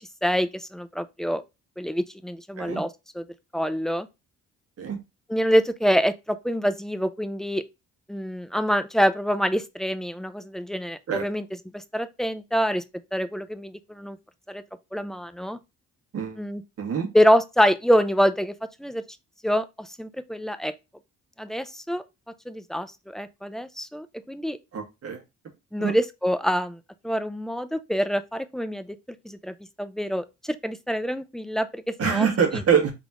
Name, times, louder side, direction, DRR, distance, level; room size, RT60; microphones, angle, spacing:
voice 1, 0.2-1.4 1.8-3.2 3.5-4.1 5.3-7.6 8.1-11.4 11.7-12.8 13.1-14.2 14.5-14.6 14.9-15.6 16.4-16.6 17.1-19.0 19.4-20.7 21.4-22.0 22.5-24.6 25.7-26.8 27.0-29.0 29.2-32.5, equal, ahead, 0.4 m, -26 dB
voice 2, 24.7-25.2 25.8-25.9 32.0-32.9, right 7 dB, 50° right, 1.7 m, -24 dB
4.1 x 3.6 x 2.9 m
cardioid pair, 90°, 30 cm